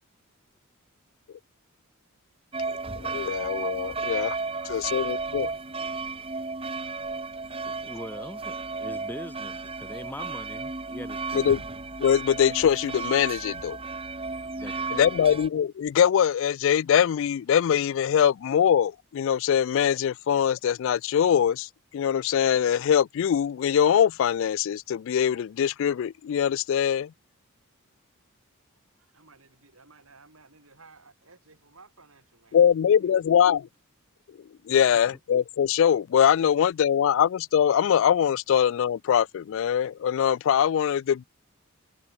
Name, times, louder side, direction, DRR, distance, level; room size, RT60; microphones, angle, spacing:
sound 1, 2.5-15.5, right 4 dB, 25° right, 1.8 m, -34 dB
voice 1, 3.0-4.4 4.7-5.5 11.3-11.6 12.0-13.8 14.9-27.1 32.5-33.7 34.7-41.2, left 8 dB, 60° left, 0.3 m, -23 dB
voice 2, 4.4-6.3 14.4-15.1 29.0-32.7 33.0-33.4, right 3 dB, 75° right, 5.9 m, -56 dB
voice 3, 7.7-11.5 14.6-14.9 34.7-34.8, left 1 dB, 10° left, 2.1 m, -42 dB
head